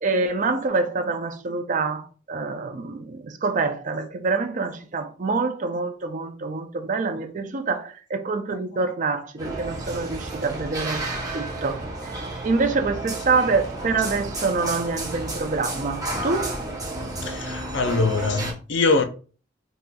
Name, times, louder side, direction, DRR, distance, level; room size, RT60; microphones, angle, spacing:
voice 1, 0.0-11.1 11.3-12.2 12.4-16.5, right 4 dB, 45° right, 0.5 m, -26 dB
sound 1, 9.4-18.5, right 2 dB, 20° right, 0.9 m, -31 dB
voice 2, 17.2-19.0, left 3 dB, 80° left, 0.5 m, -23 dB
4.0 x 2.7 x 2.3 m
head